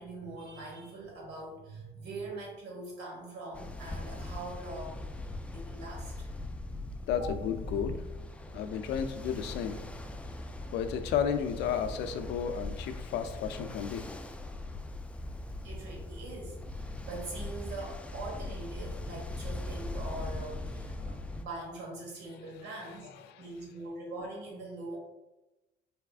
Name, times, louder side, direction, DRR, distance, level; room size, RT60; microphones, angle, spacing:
voice 1, 0.0-5.1 5.5-6.3 7.2-7.3 15.6-25.0, right 2 dB, 80° right, -1 dB, 1.4 m, -43 dB
Ocean, 3.5-21.4, left 2 dB, 5° left, 0.3 m, -40 dB
voice 2, 7.1-8.0 8.5-9.8 10.6-14.1 21.0-21.1 22.8-22.9 23.3-23.5, left 8 dB, 80° left, 9 dB, 0.4 m, -33 dB
4.2 x 3.3 x 2.4 m, 0.99 s
cardioid pair, 110°, 17 cm